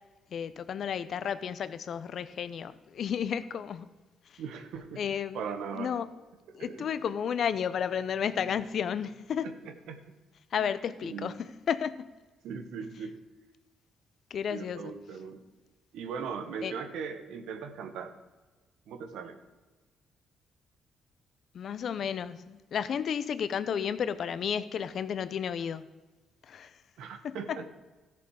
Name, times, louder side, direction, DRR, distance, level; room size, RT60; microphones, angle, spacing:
voice 1, 0.3-3.9 4.3-4.4 5.0-5.4 5.7-6.1 6.5-9.5 10.5-12.1 14.3-14.9 16.6-16.7 21.5-25.9 26.4-26.8 27.2-27.6, left 8 dB, 60° left, 0.6 m, -32 dB
voice 2, 4.4-5.0 5.3-5.9 6.6-6.9 9.4-10.0 10.6-10.7 11.0-11.3 12.4-13.2 14.5-15.4 15.9-18.1 18.9-19.4 27.0-27.6, right 6 dB, 85° right, 1.1 m, -39 dB
14.0 x 6.9 x 4.7 m
cardioid pair, 90°, 0 cm